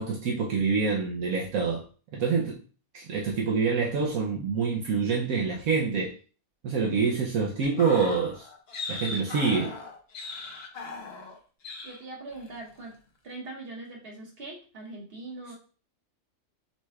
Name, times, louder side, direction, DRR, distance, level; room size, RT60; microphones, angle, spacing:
voice 1, 0.0-1.9 2.1-2.6 2.9-6.1 6.6-8.5 8.9-9.8, right 5 dB, 75° right, 1.1 m, -26 dB
sound 1, 7.6-11.4 11.6-12.0 12.3-12.5, left 3 dB, 50° left, 1.0 m, -38 dB
voice 2, 11.8-12.9 13.2-15.5, right 2 dB, 40° right, 1.6 m, -41 dB
7.2 x 3.2 x 2.3 m
omnidirectional pair, 1.5 m